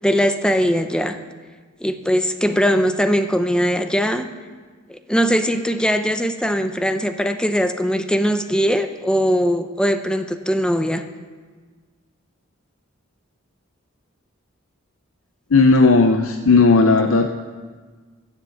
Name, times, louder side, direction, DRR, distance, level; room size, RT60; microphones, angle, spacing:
voice 1, 0.0-1.1 1.8-4.3 4.9-11.0, equal, 5° left, 8 dB, 0.6 m, -20 dB
voice 2, 15.5-17.4, left 3 dB, 80° left, 6 dB, 0.6 m, -14 dB
14.0 x 7.4 x 7.7 m, 1.5 s
head